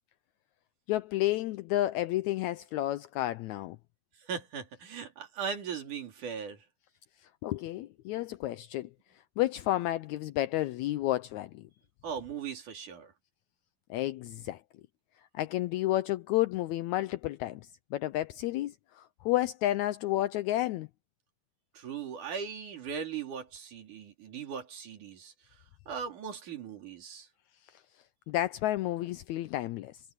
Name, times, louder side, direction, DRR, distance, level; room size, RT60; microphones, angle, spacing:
voice 1, 0.9-3.8 7.4-8.9 9.4-11.7 13.9-14.6 15.3-20.9 28.3-30.0, left 15 dB, 80° left, 1.7 m, -31 dB
voice 2, 4.2-6.6 12.0-13.1 21.7-25.3 25.9-27.3, right 7 dB, 70° right, 4.3 m, -39 dB
omnidirectional pair, 3.8 m